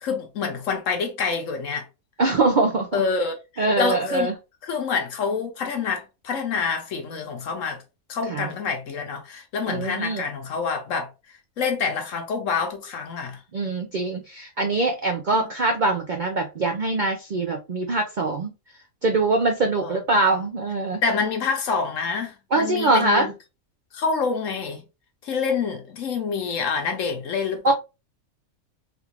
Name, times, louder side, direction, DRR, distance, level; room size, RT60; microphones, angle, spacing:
voice 1, 0.0-1.9 2.9-4.3 4.6-7.8 8.1-11.1 11.6-13.4 15.3-15.5 19.8-20.0 21.0-23.3 23.9-24.8 25.2-27.7, left 5 dB, 65° left, 1.2 m, -27 dB
voice 2, 2.2-3.0 3.6-4.3 8.3-8.5 9.7-10.2 13.5-18.5 19.0-21.0 22.5-23.3 27.6-27.7, right 2 dB, 60° right, 0.5 m, -23 dB
3.5 x 2.4 x 3.0 m
omnidirectional pair, 1.5 m